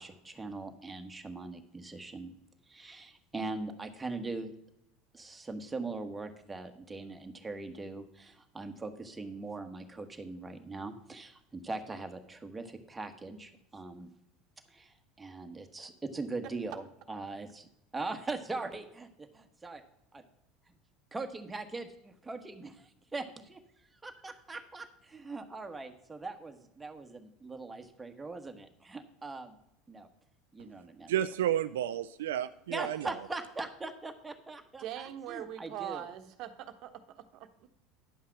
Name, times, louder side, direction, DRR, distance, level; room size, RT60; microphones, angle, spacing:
voice 1, 0.0-2.3 2.7-4.5 5.1-14.1 14.7-17.7 17.9-19.8 20.1-20.2 21.1-23.6 24.0-29.5 29.9-30.1 30.5-31.1 32.7-36.1, right 3 dB, 15° right, 1.3 m, -41 dB
voice 2, 31.1-33.1, right 11 dB, 85° right, 0.3 m, -31 dB
voice 3, 34.8-37.7, right 11 dB, 60° right, 1.0 m, -42 dB
10.0 x 5.6 x 5.9 m
supercardioid pair, 95°, 0 cm